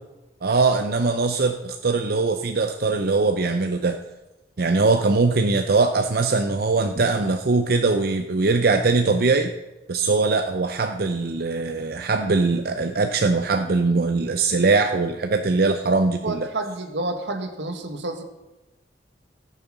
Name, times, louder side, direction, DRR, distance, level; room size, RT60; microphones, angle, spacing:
voice 1, 0.4-4.0 4.6-9.5 9.9-16.5, right 3 dB, 60° right, 6 dB, 0.6 m, -21 dB
voice 2, 16.2-18.2, right 2 dB, 85° right, 6 dB, 1.6 m, -29 dB
16.0 x 6.9 x 6.0 m, 1.0 s
head